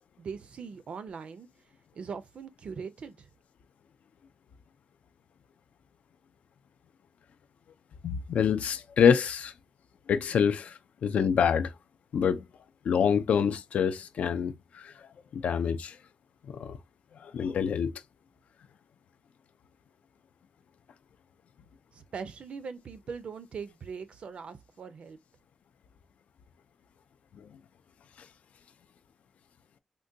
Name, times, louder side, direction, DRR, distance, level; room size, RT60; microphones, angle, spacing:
voice 1, 0.2-1.5 1.9-3.3 21.9-25.2, right 5 dB, 55° right, 0.5 m, -41 dB
voice 2, 8.0-9.5 10.1-11.7 12.1-12.5 12.8-14.9 15.3-16.0 16.4-16.8 17.2-18.0 27.4-27.5, left 7 dB, 85° left, 0.4 m, -26 dB
3.7 x 2.2 x 2.6 m
wide cardioid pair, 155°, 2 cm